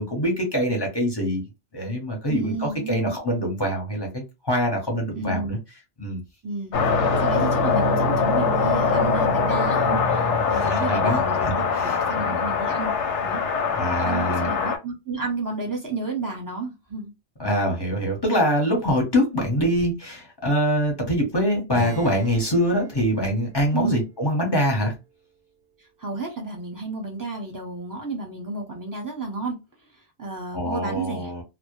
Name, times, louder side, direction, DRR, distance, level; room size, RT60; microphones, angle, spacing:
voice 1, 0.0-1.4 1.7-5.6 6.0-6.2 10.5-12.5 13.7-14.5 17.4-24.9 30.5-31.4, equal, 25° left, 0.7 m, -24 dB
voice 2, 2.3-3.1 5.1-5.6 6.4-6.7 7.2-13.0 13.2-13.4 14.0-17.1 23.7-24.0 26.0-29.6 29.9-31.3, right 3 dB, 20° right, 0.6 m, -31 dB
sound 1, 6.7-14.8, left 5 dB, 90° left, 0.9 m, -22 dB
Acoustic guitar / Strum, 21.7-26.0, right 2 dB, 60° right, 0.6 m, -42 dB
2.1 x 2.1 x 2.9 m
omnidirectional pair, 1.2 m